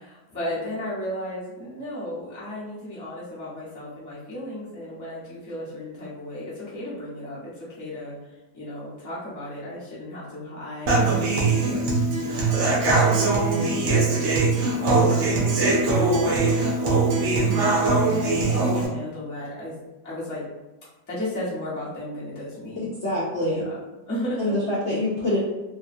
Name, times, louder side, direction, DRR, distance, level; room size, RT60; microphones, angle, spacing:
voice 1, 0.0-8.2 8.5-19.8 20.0-20.5 21.1-22.9 23.4-24.5, left 1 dB, 15° left, -10 dB, 0.8 m, -35 dB
Human voice / Acoustic guitar, 10.9-18.9, right 3 dB, 60° right, 0.8 m, -21 dB
voice 2, 22.8-23.6 24.4-25.4, left 1 dB, 60° left, -9 dB, 0.8 m, -25 dB
2.7 x 2.2 x 2.5 m, 1.1 s
omnidirectional pair, 1.6 m